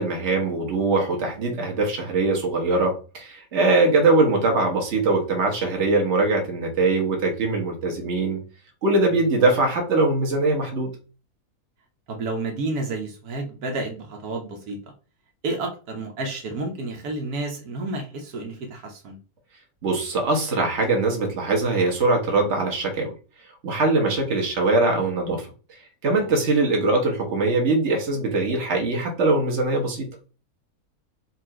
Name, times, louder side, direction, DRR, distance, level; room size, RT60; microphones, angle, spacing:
voice 1, 0.0-8.4 8.8-10.9 19.8-23.1 23.6-25.5 26.0-30.1, right 2 dB, 50° right, 1 dB, 1.4 m, -22 dB
voice 2, 12.1-14.8 15.4-19.2 26.1-26.3, right 2 dB, 80° right, 2 dB, 1.4 m, -31 dB
4.3 x 2.6 x 4.3 m, 0.35 s
omnidirectional pair, 1.6 m